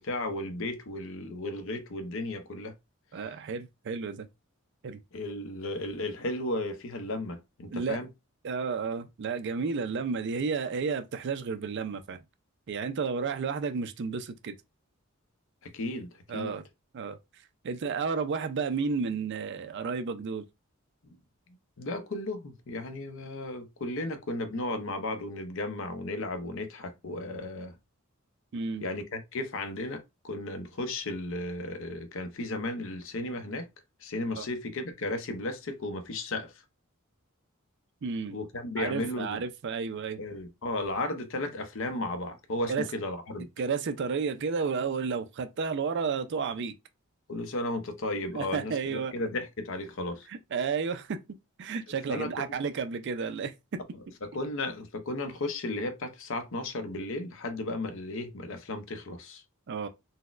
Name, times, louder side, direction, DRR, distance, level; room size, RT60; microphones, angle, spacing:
voice 1, 0.0-2.7 5.1-8.1 15.6-16.5 21.8-27.8 28.8-33.7 34.0-36.5 38.3-39.4 40.2-43.5 47.3-50.3 52.1-52.6 54.2-59.4, left 2 dB, 65° left, 0.6 m, -34 dB
voice 2, 3.1-4.3 4.8-5.0 7.7-8.0 8.4-12.2 12.7-14.5 16.3-16.6 16.9-17.2 17.6-20.4 28.5-28.9 34.4-34.5 38.0-38.4 38.8-40.2 42.7-42.9 43.6-46.7 48.3-49.1 50.3-51.2 51.6-53.8 59.7-59.9, right 5 dB, 55° right, 0.4 m, -32 dB
4.0 x 2.1 x 2.4 m
head